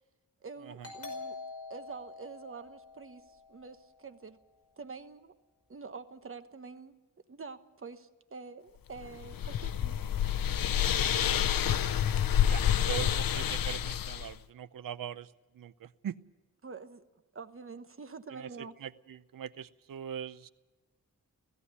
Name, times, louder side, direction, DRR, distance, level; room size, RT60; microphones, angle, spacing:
voice 1, 0.4-1.4 1.7-4.4 4.8-5.3 5.7-6.9 7.3-10.0 16.6-17.0 17.3-18.8, right 4 dB, 40° right, 10 dB, 1.2 m, -46 dB
Doorbell, 0.8-4.2, left 3 dB, 40° left, 5.3 m, -46 dB
sound 1, 9.0-14.3, left 9 dB, 80° left, 0.7 m, -28 dB
voice 2, 12.5-15.3 15.5-16.2 18.3-18.5 18.8-20.5, right 9 dB, 75° right, 15 dB, 0.7 m, -41 dB
17.0 x 16.0 x 9.6 m, 1.1 s
wide cardioid pair, 110°, 34 cm